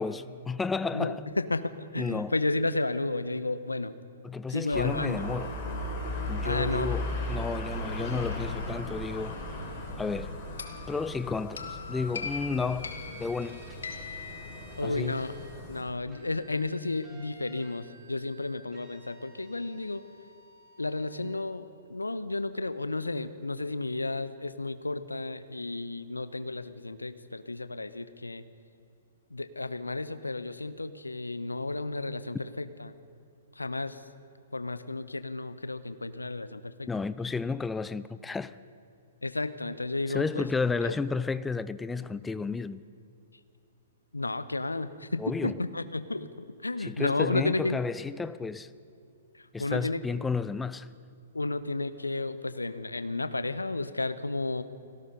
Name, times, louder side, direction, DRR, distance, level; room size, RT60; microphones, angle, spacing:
voice 1, 0.0-1.3 2.0-2.4 4.2-5.5 6.3-9.4 10.0-10.4 10.9-13.6 14.8-15.2 36.9-38.6 40.1-42.8 45.2-45.5 46.8-48.7 49.5-50.9, left 4 dB, 10° left, 0.6 m, -32 dB
voice 2, 0.9-3.9 4.5-5.2 6.4-6.9 14.8-15.3 15.7-20.0 20.8-28.4 29.3-32.9 33.6-34.0 34.5-36.9 39.2-40.5 40.8-40.9 44.1-47.8 49.6-50.0 51.3-54.6, left 2 dB, 80° left, 1.1 m, -32 dB
sound 1, 4.7-15.8, left 1 dB, 35° left, 5.7 m, -36 dB
sound 2, 10.6-15.3, left 5 dB, 65° left, 2.3 m, -41 dB
sound 3, 12.6-15.5 16.1-21.2, right 1 dB, 15° right, 7.1 m, -55 dB
29.5 x 19.5 x 5.5 m
figure-of-eight pair, 115°, 0 cm